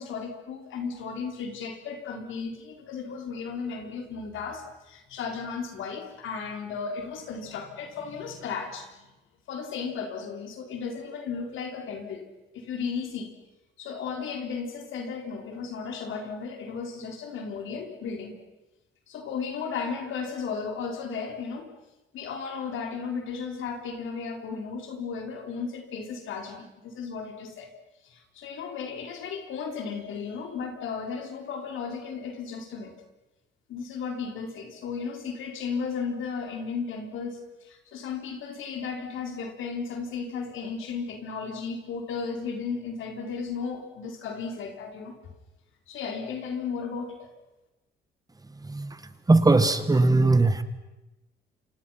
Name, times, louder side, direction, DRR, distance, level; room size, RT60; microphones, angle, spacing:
voice 1, 0.0-9.1 9.5-12.2 12.5-13.3 13.8-18.3 19.1-21.7 22.1-27.7 28.0-32.9 33.7-45.2 45.9-47.3, left 5 dB, 80° left, 4 dB, 4.6 m, -35 dB
voice 2, 49.3-50.6, right 3 dB, 20° right, 11 dB, 1.9 m, -20 dB
28.5 x 26.0 x 5.9 m, 1.0 s
cardioid pair, 90°, 20 cm